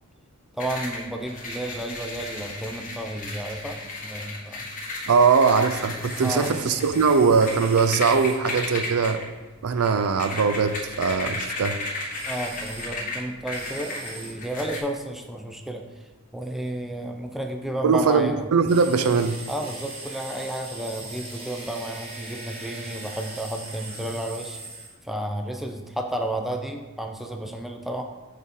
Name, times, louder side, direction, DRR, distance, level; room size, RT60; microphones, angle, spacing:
voice 1, 0.5-4.7 6.2-6.6 12.3-18.5 19.5-24.6 25.0-28.0, right 1 dB, ahead, 3 dB, 0.4 m, -32 dB
sound 1, 0.6-14.8, left 2 dB, 35° left, 1.1 m, -35 dB
voice 2, 5.1-9.2 9.6-11.8 17.8-19.4, right 5 dB, 85° right, 10 dB, 0.5 m, -21 dB
sound 2, 6.0-8.4 12.1-12.9 13.5-14.3 18.7-24.9, right 2 dB, 25° right, 1.3 m, -40 dB
6.3 x 5.2 x 3.7 m, 1.2 s
head